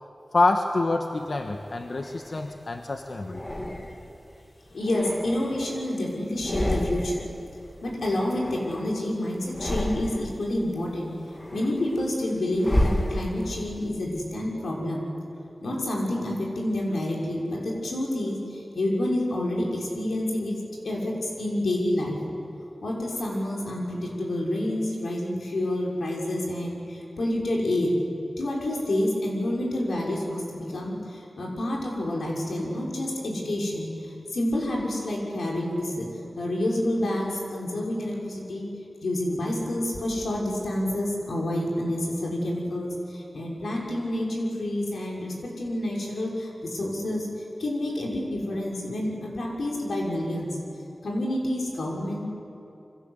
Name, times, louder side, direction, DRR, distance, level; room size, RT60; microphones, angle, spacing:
voice 1, 0.3-3.4, left 2 dB, 55° left, 4 dB, 1.4 m, -26 dB
sound 1, 1.4-2.6 3.3-4.2 4.7-6.0 6.3-7.4 7.6-9.0 9.4-10.5 10.9-13.7, left 1 dB, 20° left, 2.3 m, -31 dB
voice 2, 4.7-7.3 7.8-11.1 11.5-15.1 15.6-20.6 20.8-22.2 22.8-28.0 28.4-38.7 39.0-47.3 47.6-50.6 51.0-52.3, left 1 dB, 90° left, -2 dB, 6.1 m, -28 dB
28.5 x 24.5 x 8.3 m, 2.9 s
wide cardioid pair, 95°, 0 cm